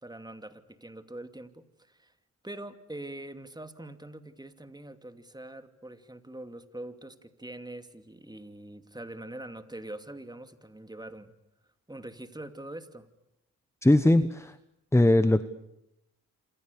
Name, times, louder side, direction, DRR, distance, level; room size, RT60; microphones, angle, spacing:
voice 1, 0.0-2.1 2.4-11.3 11.9-13.1, right 1 dB, 10° right, 9 dB, 2.6 m, -43 dB
voice 2, 13.8-14.6 14.9-15.4, left 1 dB, 5° left, 13 dB, 1.1 m, -20 dB
27.5 x 27.0 x 6.9 m, 0.85 s
supercardioid pair, 60°, 38 cm